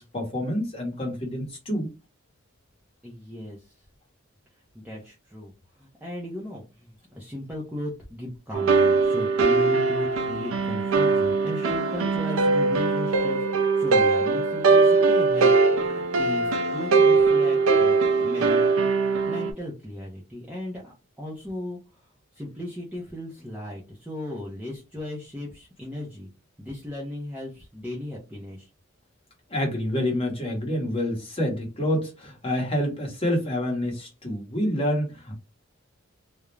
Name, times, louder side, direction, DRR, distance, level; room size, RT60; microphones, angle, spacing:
voice 1, 0.0-1.9 29.5-35.4, left 1 dB, 30° left, 1.0 m, -27 dB
voice 2, 3.0-3.7 4.7-18.6 19.3-21.8 22.3-26.3 26.6-28.7, left 1 dB, 10° right, 0.5 m, -36 dB
sound 1, 8.5-19.5, right 4 dB, 80° right, 0.4 m, -21 dB
2.4 x 2.1 x 3.1 m
head